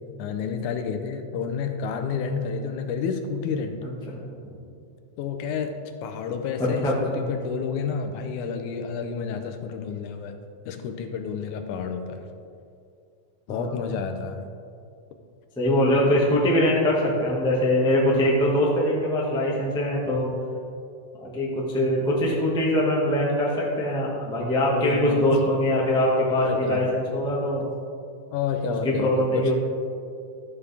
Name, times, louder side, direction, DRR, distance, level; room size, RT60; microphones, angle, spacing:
voice 1, 0.2-3.8 5.2-10.3 10.7-12.3 13.5-14.4 24.7-25.3 26.3-26.9 28.3-29.5, left 6 dB, 85° left, 6 dB, 2.2 m, -30 dB
voice 2, 6.8-7.2 13.5-13.7 15.6-20.3 21.2-27.7 29.0-29.5, left 1 dB, 5° left, -5 dB, 0.5 m, -23 dB
12.5 x 7.1 x 3.4 m, 2.4 s
omnidirectional pair, 3.4 m